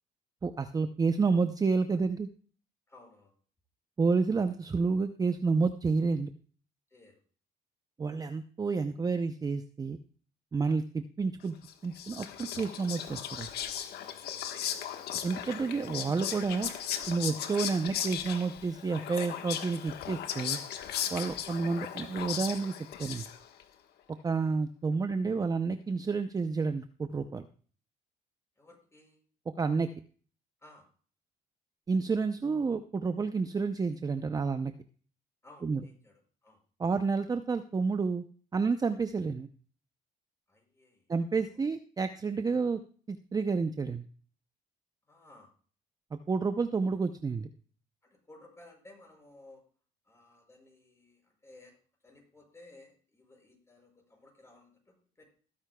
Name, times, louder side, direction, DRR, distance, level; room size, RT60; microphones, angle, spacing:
voice 1, 0.4-2.3 4.0-6.3 8.0-10.0 10.5-11.5 11.8-13.5 15.2-16.7 17.1-20.6 21.1-22.7 23.0-23.2 24.2-27.4 29.6-29.9 31.9-34.7 35.6-35.8 36.8-38.2 38.5-39.5 41.1-42.8 43.1-44.0 46.3-47.5, right 4 dB, 20° right, 9 dB, 0.6 m, -30 dB
voice 2, 2.9-3.3 6.9-7.2 24.9-25.0 28.6-29.2 30.6-30.9 35.4-36.6 40.5-41.1 41.5-41.7 45.1-45.5 48.0-49.7 50.0-51.8 52.0-55.3, left 2 dB, 15° left, 1 dB, 5.9 m, -57 dB
Whispering, 11.6-23.6, left 9 dB, 70° left, 1.3 m, -37 dB
18.5 x 9.6 x 2.3 m, 0.42 s
cardioid pair, 110°, 17 cm